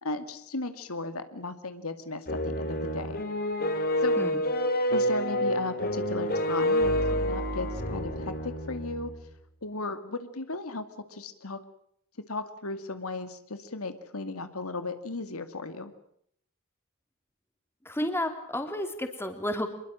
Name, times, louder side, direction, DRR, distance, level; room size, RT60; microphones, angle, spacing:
voice 1, 0.0-3.2 4.0-4.2 4.9-9.1 9.6-10.8 11.1-11.6 12.3-15.9, left 3 dB, 80° left, 10 dB, 2.3 m, -36 dB
sound 1, 2.3-9.2, equal, 45° left, 3.0 m, -28 dB
voice 2, 17.8-19.7, left 1 dB, 10° left, 6 dB, 3.4 m, -31 dB
26.0 x 22.0 x 7.6 m, 0.69 s
head